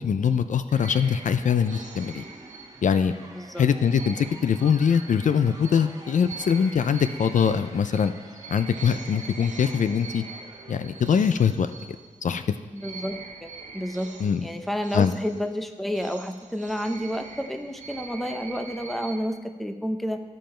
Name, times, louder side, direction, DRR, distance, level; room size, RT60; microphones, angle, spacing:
voice 1, 0.0-2.2 2.8-3.1 3.6-8.1 8.5-10.2 10.7-11.7 12.2-12.6 14.2-14.5 14.9-15.1, left 7 dB, 70° left, 11 dB, 0.4 m, -22 dB
sound 1, 0.7-11.8, right 1 dB, 25° right, 1.3 m, -48 dB
sound 2, 0.7-3.2 3.9-12.4 12.7-19.3, right 4 dB, 70° right, 0.9 m, -43 dB
voice 2, 3.3-3.6 12.7-14.2 14.4-20.2, equal, ahead, 6 dB, 0.6 m, -30 dB
14.0 x 5.3 x 4.4 m, 1.3 s
wide cardioid pair, 95°, 13 cm